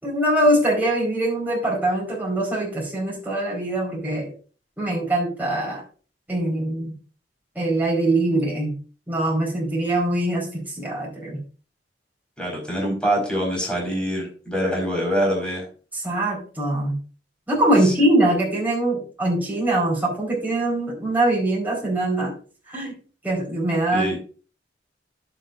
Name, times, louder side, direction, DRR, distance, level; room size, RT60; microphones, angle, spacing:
voice 1, 0.0-4.3 4.8-5.8 6.3-6.9 7.5-8.7 9.1-11.4 15.9-17.0 17.5-22.3 22.7-22.9 23.2-24.2, right 1 dB, 10° right, -3 dB, 4.3 m, -23 dB
voice 2, 12.4-15.7 17.8-17.9 23.9-24.2, equal, 5° left, -1 dB, 4.6 m, -24 dB
11.5 x 7.9 x 2.5 m, 0.38 s
head